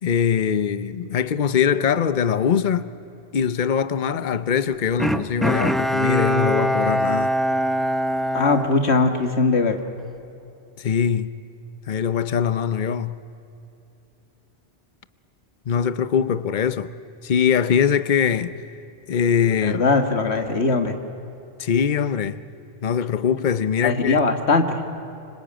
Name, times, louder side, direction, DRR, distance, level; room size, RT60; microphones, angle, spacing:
voice 1, 0.0-2.9 3.3-7.4 10.8-11.3 11.9-13.2 15.7-16.9 17.2-18.7 19.1-19.8 21.6-22.4 22.8-24.2, left 7 dB, 50° left, 0.9 m, -22 dB
Bowed string instrument, 5.0-9.5 9.9-10.0, equal, ahead, 0.6 m, -23 dB
voice 2, 8.3-9.8 19.6-20.9 23.8-24.8, left 3 dB, 75° left, 2.0 m, -20 dB
25.5 x 25.0 x 9.0 m
omnidirectional pair, 1.1 m